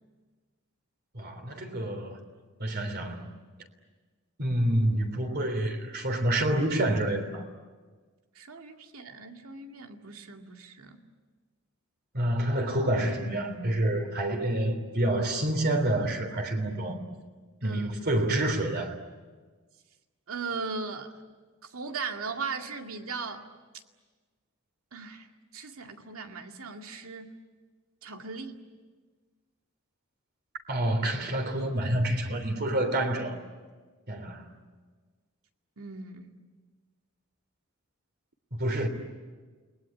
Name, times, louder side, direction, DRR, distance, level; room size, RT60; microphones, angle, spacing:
voice 1, 1.1-2.2 2.6-3.2 4.4-7.4 12.1-17.0 17.6-19.0 30.7-33.4 34.1-34.5 38.5-38.9, right 1 dB, 50° right, 3.4 m, -28 dB
voice 2, 8.3-11.0 17.6-18.1 20.3-21.1 21.6-23.5 24.9-25.3 25.5-27.4 28.0-28.6 35.8-36.4, right 4 dB, 85° right, 2.2 m, -38 dB
29.5 x 20.5 x 9.8 m
head